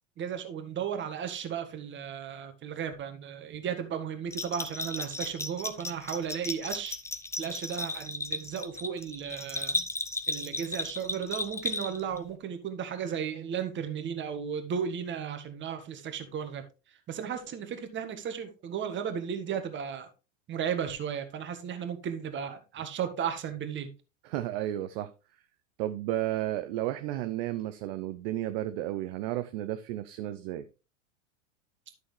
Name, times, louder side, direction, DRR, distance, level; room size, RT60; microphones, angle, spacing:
voice 1, 0.2-7.0 7.4-9.8 10.3-20.1 20.5-23.9, right 7 dB, 30° right, 1.6 m, -35 dB
Bell, 4.3-12.2, left 2 dB, 5° left, 0.7 m, -35 dB
voice 2, 24.2-25.1 25.8-30.6, right 13 dB, 45° right, 0.7 m, -32 dB
11.0 x 6.3 x 3.2 m
hypercardioid pair, 95°, 39 cm